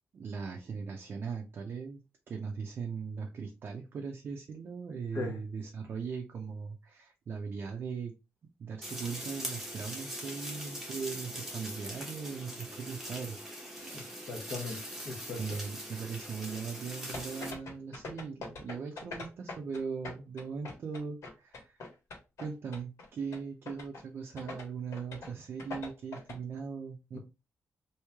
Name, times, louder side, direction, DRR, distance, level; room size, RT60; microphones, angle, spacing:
voice 1, 0.1-8.1 8.6-13.4 13.7-14.3 15.4-21.8 22.4-27.2, right 5 dB, 45° right, 0.5 m, -39 dB
sound 1, 8.8-17.5, equal, 5° right, 0.9 m, -42 dB
voice 2, 14.3-15.6 27.1-27.2, left 3 dB, 50° left, 1.0 m, -38 dB
sound 2, 17.1-19.8 20.0-22.4 22.7-23.1 23.3-23.4 23.7-24.0 24.4-24.6 24.9-25.3 25.6-26.4, left 3 dB, 85° left, 1.5 m, -42 dB
3.1 x 2.7 x 3.4 m
wide cardioid pair, 180°, 5 cm